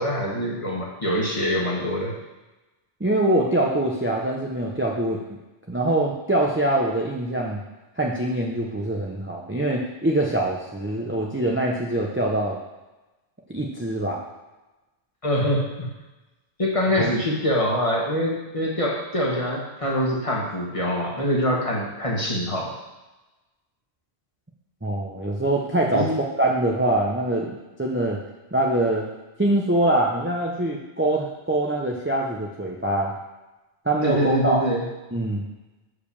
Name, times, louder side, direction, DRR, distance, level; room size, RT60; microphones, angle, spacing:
voice 1, 0.0-2.2 15.2-15.9 16.6-22.7 25.9-26.1 34.0-34.8, equal, 25° left, -3 dB, 1.7 m, -24 dB
voice 2, 3.0-5.2 5.7-7.6 8.0-12.6 13.5-14.2 17.0-17.1 24.8-26.1 26.4-28.2 28.5-29.1 29.4-33.1 33.8-34.6 35.1-35.4, right 1 dB, 10° right, -2 dB, 0.8 m, -24 dB
6.8 x 5.0 x 7.1 m, 1.1 s
omnidirectional pair, 1.2 m